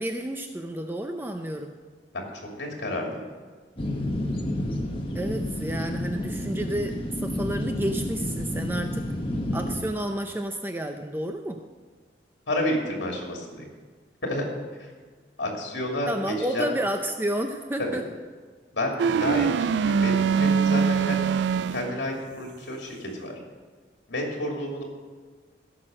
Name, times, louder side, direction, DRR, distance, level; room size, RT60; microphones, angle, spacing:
voice 1, 0.0-1.7 5.1-9.1 9.5-11.6 16.1-18.0, right 1 dB, 10° right, 4 dB, 0.6 m, -30 dB
voice 2, 2.5-3.2 12.5-13.7 14.2-14.5 14.8-14.9 15.4-16.7 17.8-17.9 18.7-21.3 21.7-23.3 24.1-24.8, left 1 dB, 75° left, 0 dB, 2.7 m, -30 dB
sound 1, 3.8-9.8, left 1 dB, 30° left, 1.4 m, -30 dB
sound 2, 19.0-22.1, right 6 dB, 75° right, 0.3 m, -23 dB
16.5 x 6.1 x 7.6 m, 1.5 s
head